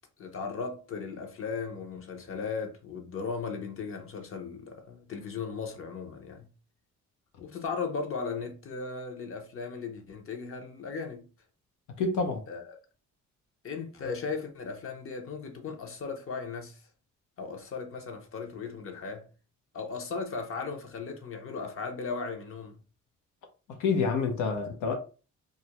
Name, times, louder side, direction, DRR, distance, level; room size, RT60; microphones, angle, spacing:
voice 1, 0.2-6.5 7.4-11.3 12.5-12.8 13.6-16.8 17.4-19.3 19.7-22.8, left 5 dB, 45° left, 0.7 m, -37 dB
voice 2, 12.0-12.4 23.7-24.9, left 4 dB, 90° left, 0.7 m, -28 dB
2.4 x 2.1 x 2.9 m
cardioid pair, 90°, 30 cm